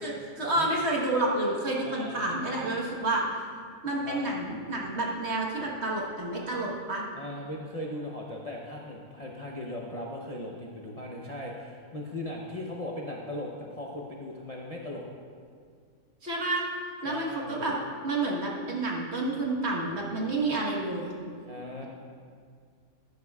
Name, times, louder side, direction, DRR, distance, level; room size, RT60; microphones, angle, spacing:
voice 1, 0.0-3.3 3.8-7.0 16.2-16.6 17.0-17.8 18.0-21.1, right 2 dB, 50° right, -2 dB, 1.6 m, -29 dB
voice 2, 1.8-2.2 4.0-4.2 7.1-15.0 17.0-17.6 21.4-21.8, left 1 dB, 35° left, -2 dB, 0.7 m, -38 dB
14.5 x 10.5 x 2.4 m, 2.1 s
omnidirectional pair, 1.5 m